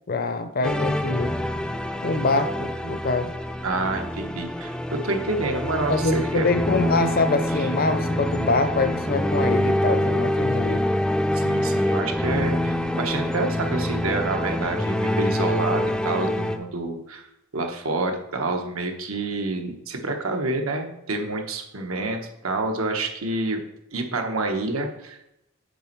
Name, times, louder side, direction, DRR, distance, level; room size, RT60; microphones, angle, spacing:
voice 1, 0.1-1.3 2.0-3.3 5.9-10.8, left 3 dB, 45° left, 9 dB, 0.7 m, -24 dB
sound 1, 0.6-16.6, left 1 dB, 5° left, 0.4 m, -25 dB
voice 2, 3.6-6.4 7.6-7.7 11.3-17.3 17.5-23.6 23.9-25.3, right 2 dB, 85° right, 4 dB, 1.1 m, -28 dB
6.8 x 5.2 x 4.5 m, 0.83 s
head